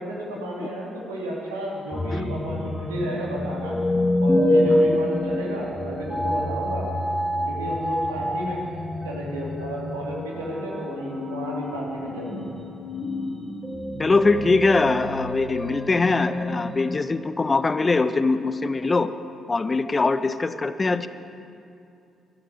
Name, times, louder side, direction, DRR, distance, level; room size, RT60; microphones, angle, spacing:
voice 1, 0.0-3.8 4.2-6.9 7.5-8.6 9.0-12.5, right 1 dB, 75° right, -4 dB, 2.9 m, -32 dB
sound 1, 1.9-17.0, left 1 dB, 10° left, 2.2 m, -27 dB
voice 2, 14.0-19.1 19.5-21.1, left 3 dB, 30° left, 12 dB, 0.7 m, -22 dB
13.0 x 12.0 x 8.9 m, 2.6 s
figure-of-eight pair, 40°, 0 cm